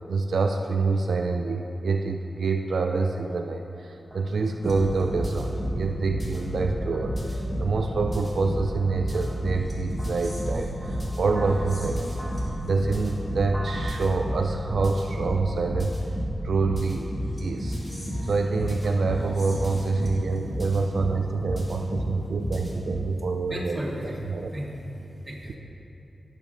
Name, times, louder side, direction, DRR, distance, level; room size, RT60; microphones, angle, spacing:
voice 1, 0.1-12.2 12.6-15.9 16.4-17.1 17.4-17.8 18.2-24.5, right 4 dB, 80° right, 4 dB, 0.3 m, -27 dB
sound 1, 4.0-18.9, right 1 dB, 5° right, 1.9 m, -45 dB
sound 2, 4.6-22.9, equal, 40° left, 1.9 m, -31 dB
voice 2, 23.5-25.5, equal, 20° right, -4 dB, 1.5 m, -35 dB
13.5 x 6.7 x 2.5 m, 2.9 s
wide cardioid pair, 110°, 0 cm